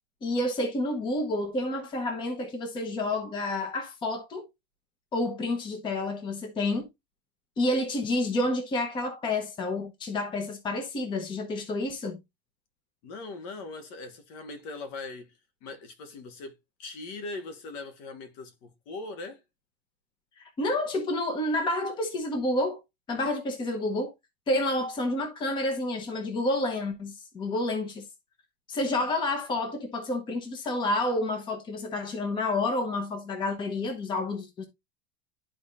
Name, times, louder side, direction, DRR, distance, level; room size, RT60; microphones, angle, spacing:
voice 1, 0.2-4.5 5.1-6.9 7.6-12.2 20.4-22.8 23.1-24.1 24.5-28.1 28.7-34.7, left 2 dB, 15° left, 1.0 m, -29 dB
voice 2, 13.0-15.3 15.6-19.4, left 3 dB, 45° left, 1.5 m, -40 dB
12.0 x 4.3 x 2.6 m
supercardioid pair, 175°, 30 cm